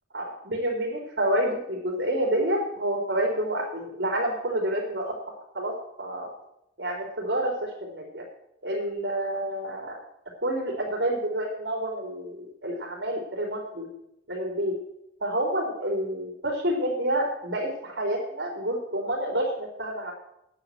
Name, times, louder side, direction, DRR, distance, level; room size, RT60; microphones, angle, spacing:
voice 1, 0.1-6.3 6.8-8.2 8.6-10.0 10.4-13.9 14.3-14.8 15.2-20.1, right 1 dB, 80° right, -1 dB, 3.7 m, -28 dB
10.0 x 9.0 x 7.8 m, 0.78 s
head